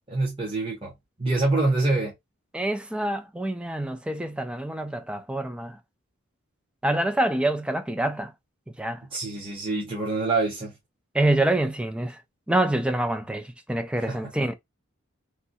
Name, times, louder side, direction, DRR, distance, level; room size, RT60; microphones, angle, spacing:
voice 1, 0.1-0.9 1.2-2.1 9.1-10.7 14.0-14.5, right 2 dB, 25° right, 0.9 m, -26 dB
voice 2, 2.5-5.8 6.8-8.3 8.8-9.0 11.1-12.2 12.5-14.5, right 1 dB, 5° right, 0.3 m, -26 dB
3.3 x 2.2 x 2.6 m
head